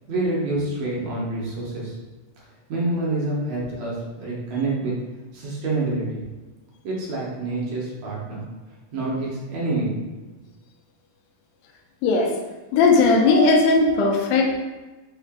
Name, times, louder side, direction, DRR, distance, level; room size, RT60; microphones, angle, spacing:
voice 1, 0.1-2.0 2.7-5.0 5.3-6.2 6.8-8.4 8.9-9.9, right 2 dB, 70° right, -5 dB, 1.8 m, -27 dB
voice 2, 12.7-14.6, left 3 dB, 80° left, 1 dB, 2.1 m, -17 dB
5.4 x 2.4 x 3.6 m, 1.2 s
omnidirectional pair, 3.8 m